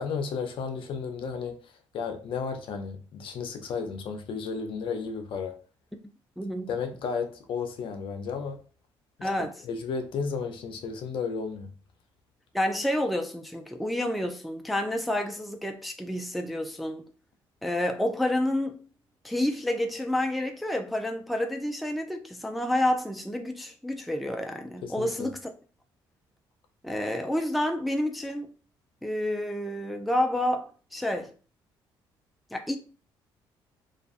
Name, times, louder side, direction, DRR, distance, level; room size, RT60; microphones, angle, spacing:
voice 1, 0.0-5.6 6.7-8.6 9.2-11.7 24.8-25.3, left 5 dB, 60° left, 0.5 m, -33 dB
voice 2, 6.4-6.7 9.2-9.5 12.5-17.0 17.6-18.8 19.2-25.4 26.8-28.5 29.0-31.3 32.5-32.8, left 1 dB, ahead, 0.4 m, -29 dB
2.4 x 2.3 x 2.3 m
supercardioid pair, 80°, 10 cm